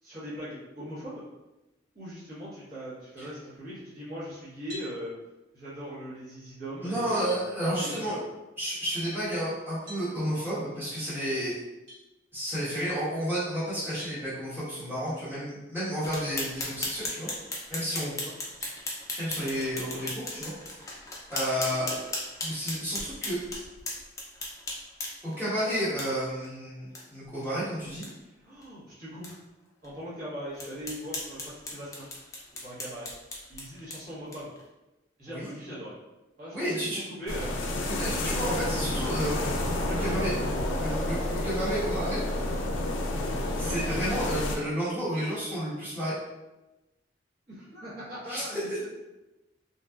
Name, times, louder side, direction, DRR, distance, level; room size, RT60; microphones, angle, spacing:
voice 1, 0.0-1.2 1.9-5.1 5.5-7.5 7.8-8.2 10.1-10.3 18.2-18.3 21.7-22.0 23.9-24.1 28.4-29.4 29.8-32.1 32.6-33.1 33.5-34.5 35.2-35.9 36.4-37.6 38.3-38.4 39.8-40.3 43.6-43.8 47.5-48.9, equal, 50° right, -10 dB, 0.9 m, -40 dB
sound 1, 4.7-5.0 6.6-6.7 7.3-7.5 9.9-10.1 11.9-12.0 14.0-14.2 16.1-16.3 16.9-17.0 18.6-18.8, right 1 dB, 70° right, 1.3 m, -45 dB
voice 2, 6.8-8.1 8.6-11.5 12.3-17.3 17.7-18.2 19.2-20.5 20.8-21.0 21.3-21.9 22.4-23.4 25.2-28.0 35.2-35.5 36.5-37.0 37.9-39.5 40.0-40.3 40.7-42.2 43.2-46.2 48.3-48.4, equal, 10° right, -12 dB, 1.1 m, -31 dB
sound 2, 16.0-25.4 26.0-26.1 26.4-26.5 26.9-27.0 27.4-27.5 27.9-28.1 28.6-28.7 29.2-29.3 29.8-29.9 30.6-34.6, left 2 dB, 15° left, 0.4 m, -37 dB
sound 3, 37.3-44.6, left 1 dB, 90° left, 0.4 m, -30 dB
2.7 x 2.2 x 2.3 m, 1.0 s
head